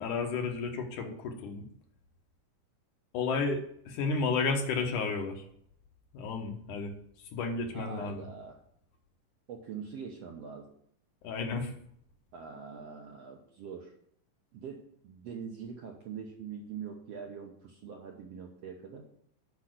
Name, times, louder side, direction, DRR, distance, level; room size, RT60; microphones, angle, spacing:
voice 1, 0.0-1.7 3.1-5.4 6.1-6.9 7.3-8.3 11.2-11.7, left 4 dB, 70° left, 3 dB, 2.6 m, -32 dB
voice 2, 7.7-8.6 9.5-10.8 12.3-13.9 14.5-19.0, right 6 dB, 65° right, 1 dB, 1.6 m, -43 dB
8.5 x 5.6 x 7.7 m, 0.68 s
omnidirectional pair, 3.9 m